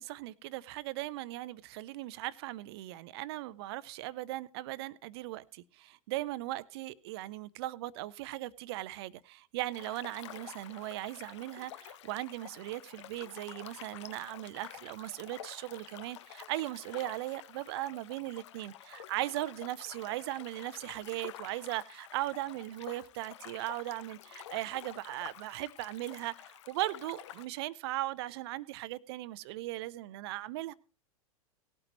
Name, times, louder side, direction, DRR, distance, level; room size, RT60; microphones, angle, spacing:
voice 1, 0.0-26.3 26.7-30.7, right 16 dB, 45° right, 0.6 m, -38 dB
sound 1, 9.7-27.5, left 12 dB, 50° left, 0.7 m, -49 dB
18.5 x 8.8 x 3.0 m
figure-of-eight pair, 95°, 19 cm